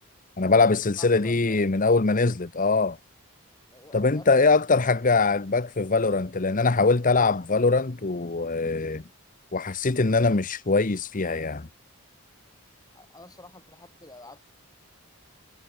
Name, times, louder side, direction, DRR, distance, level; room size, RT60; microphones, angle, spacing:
voice 1, 0.4-3.0 3.9-9.0 9.5-11.7, left 3 dB, 35° left, 0.8 m, -22 dB
voice 2, 1.0-1.6 3.7-4.3 12.9-14.4, left 2 dB, 15° left, 7.9 m, -48 dB
head